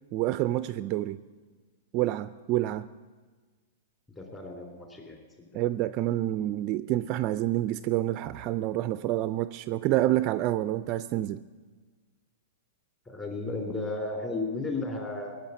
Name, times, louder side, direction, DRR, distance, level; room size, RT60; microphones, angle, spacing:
voice 1, 0.1-1.2 1.9-2.9 5.5-11.4, right 14 dB, 35° right, 14 dB, 0.4 m, -28 dB
voice 2, 4.1-5.5 13.1-15.3, left 2 dB, 15° left, 2 dB, 3.0 m, -34 dB
18.0 x 7.0 x 9.7 m, 1.4 s
hypercardioid pair, 145°, 0 cm